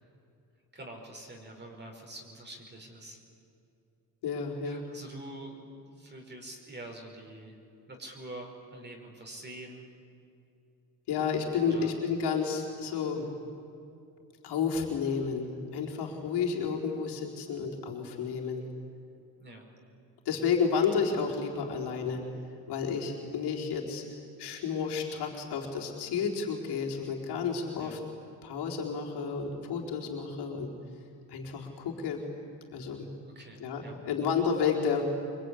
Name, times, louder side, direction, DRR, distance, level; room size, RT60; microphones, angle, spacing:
voice 1, 0.7-3.2 4.6-7.6 7.9-9.8 11.6-11.9 19.4-19.7 27.8-28.0 33.2-34.0, right 1 dB, 25° right, 1 dB, 5.4 m, -46 dB
voice 2, 4.2-4.8 11.1-13.3 14.4-18.6 20.2-22.2 22.7-24.0 24.4-28.0 28.4-30.7 31.3-32.2 32.7-33.1 33.6-35.1, left 6 dB, 85° left, -2 dB, 4.2 m, -31 dB
25.0 x 23.0 x 10.0 m, 2.7 s
cardioid pair, 115°, 39 cm